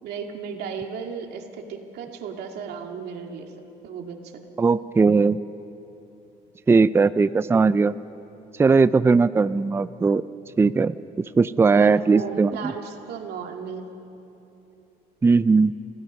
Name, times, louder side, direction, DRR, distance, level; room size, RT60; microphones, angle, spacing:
voice 1, 0.0-3.5 3.8-4.3 11.7-13.9, right 6 dB, 75° right, 3 dB, 2.2 m, -35 dB
voice 2, 4.6-5.4 6.7-7.9 8.6-10.2 10.6-10.9 11.4-12.7 15.2-15.7, right 4 dB, 15° right, 15 dB, 0.4 m, -18 dB
30.0 x 16.5 x 5.4 m, 2.9 s
cardioid pair, 110°, 17 cm